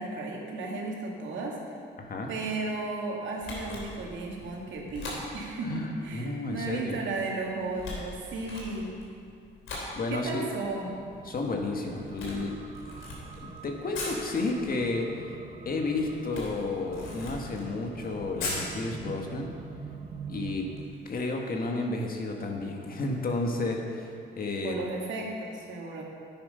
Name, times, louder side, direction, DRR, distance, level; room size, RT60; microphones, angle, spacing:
voice 1, 0.0-1.6 2.3-9.0 10.1-11.0 24.6-26.0, right 3 dB, 70° right, -1 dB, 2.1 m, -34 dB
voice 2, 2.0-2.3 5.6-7.0 9.9-10.4 11.2-12.6 13.4-15.3 15.6-19.5 20.3-20.7 21.0-24.8, left 2 dB, 45° left, 1 dB, 1.6 m, -32 dB
Camera, 3.4-21.2, left 2 dB, 85° left, 3.1 m, -43 dB
sound 1, 10.8-20.9, right 5 dB, 30° right, 0.8 m, -45 dB
10.0 x 8.8 x 5.6 m, 2.4 s
cardioid pair, 90°, 20 cm